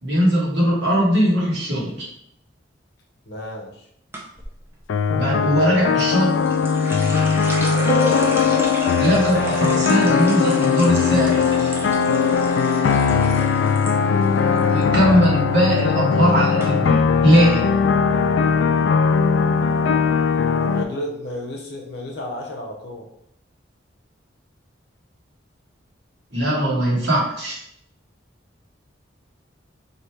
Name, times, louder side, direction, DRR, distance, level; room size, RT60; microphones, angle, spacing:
voice 1, 0.0-2.1 5.1-6.4 9.0-11.7 14.6-17.7 26.3-27.6, equal, 70° right, -4 dB, 1.5 m, -20 dB
voice 2, 3.3-3.8 8.3-8.8 13.0-13.5 20.6-23.1, left 1 dB, 60° left, 0 dB, 0.9 m, -33 dB
sound 1, 4.1-4.5 6.0-13.9 14.2-14.8 15.2-15.5 16.2-16.3 16.6-16.7, right 1 dB, 15° right, 0.6 m, -30 dB
sound 2, 4.9-20.8, left 6 dB, 80° left, 0.3 m, -19 dB
3.3 x 2.8 x 4.5 m, 0.74 s
head